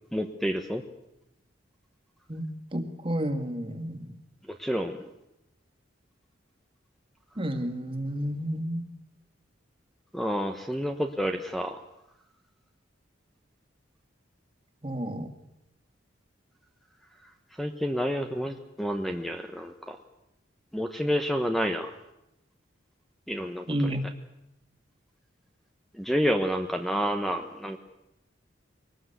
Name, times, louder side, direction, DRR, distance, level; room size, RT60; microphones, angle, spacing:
voice 1, 0.1-0.8 4.6-5.0 10.1-11.8 17.6-20.0 20.7-21.9 23.3-23.7 26.0-27.8, equal, ahead, 5 dB, 1.1 m, -29 dB
voice 2, 2.3-4.2 7.4-8.9 14.8-15.3 23.7-24.0, equal, 30° right, 7 dB, 2.3 m, -31 dB
23.5 x 19.0 x 8.2 m, 0.87 s
head